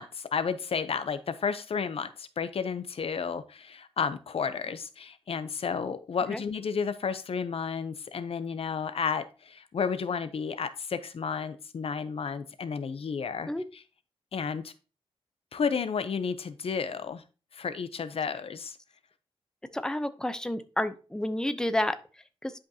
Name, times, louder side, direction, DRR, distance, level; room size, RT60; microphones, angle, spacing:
voice 1, 0.0-13.8 14.3-14.7 15.5-17.2 17.5-18.8, left 6 dB, 70° left, 11 dB, 0.7 m, -32 dB
voice 2, 19.7-22.5, left 1 dB, 5° left, 10 dB, 0.7 m, -30 dB
10.5 x 5.1 x 2.9 m, 0.34 s
wide cardioid pair, 85°, 10 cm